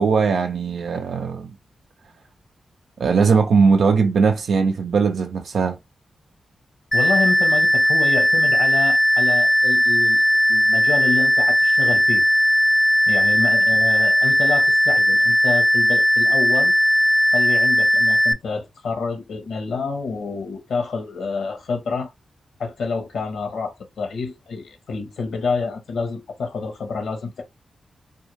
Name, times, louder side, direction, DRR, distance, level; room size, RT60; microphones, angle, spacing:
voice 1, 0.0-1.5 3.0-5.8, right 5 dB, 80° right, 0.3 m, -19 dB
voice 2, 6.9-10.2 10.5-12.2 13.1-16.7 17.3-22.1 22.6-27.4, left 4 dB, 85° left, 0.8 m, -28 dB
sound 1, 6.9-18.3, equal, 10° left, 0.4 m, -17 dB
2.3 x 2.1 x 3.1 m
cardioid pair, 50°, 0 cm